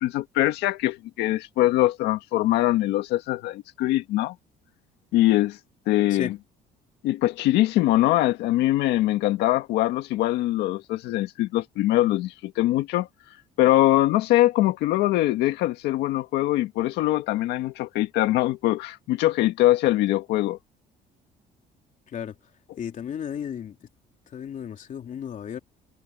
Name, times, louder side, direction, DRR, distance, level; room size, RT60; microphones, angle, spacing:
voice 1, 0.0-4.4 5.1-5.6 5.9-6.3 7.0-13.1 13.6-20.6, left 15 dB, 90° left, 1.8 m, -22 dB
voice 2, 22.1-22.4 22.8-23.9 24.3-25.6, left 8 dB, 50° left, 3.1 m, -34 dB
cardioid pair, 110°, 17 cm